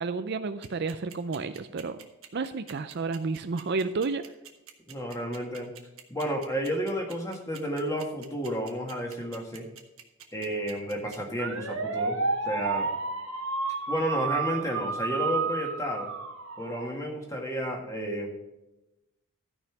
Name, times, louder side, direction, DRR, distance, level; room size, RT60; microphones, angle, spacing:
voice 1, 0.0-2.0 2.3-4.2, right 4 dB, 50° right, 10 dB, 0.5 m, -31 dB
sound 1, 0.6-17.1, right 4 dB, 65° right, 1.3 m, -32 dB
voice 2, 4.9-5.7 6.1-9.7 10.3-12.2 12.5-12.9 13.9-16.1 16.6-18.3, equal, 15° left, 0 dB, 1.8 m, -31 dB
13.0 x 5.6 x 5.9 m, 0.99 s
head